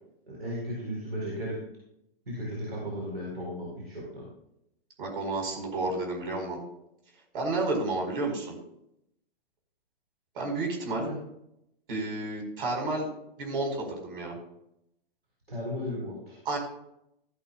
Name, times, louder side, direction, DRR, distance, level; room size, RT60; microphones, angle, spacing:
voice 1, 0.3-1.6 2.3-4.3 11.0-11.2 15.5-16.4, equal, 90° right, -4 dB, 4.3 m, -35 dB
voice 2, 5.0-6.6 7.3-8.5 10.3-11.1 11.9-13.1 13.4-14.4 16.4-16.6, right 2 dB, 65° right, 1 dB, 4.9 m, -31 dB
15.0 x 11.5 x 2.4 m, 0.79 s
hypercardioid pair, 120°, 29 cm